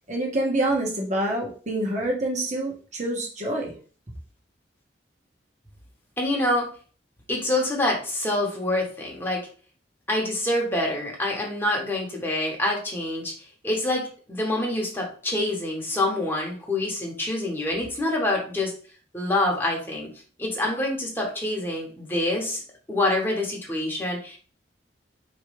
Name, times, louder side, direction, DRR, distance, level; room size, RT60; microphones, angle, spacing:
voice 1, 0.1-3.7, right 1 dB, 40° right, 0 dB, 1.2 m, -26 dB
voice 2, 6.2-6.7 7.3-9.4 10.1-13.3 13.6-18.7 19.1-20.1 20.4-22.6 22.9-24.4, left 1 dB, 10° left, -2 dB, 1.2 m, -26 dB
4.7 x 3.2 x 3.2 m, 0.41 s
head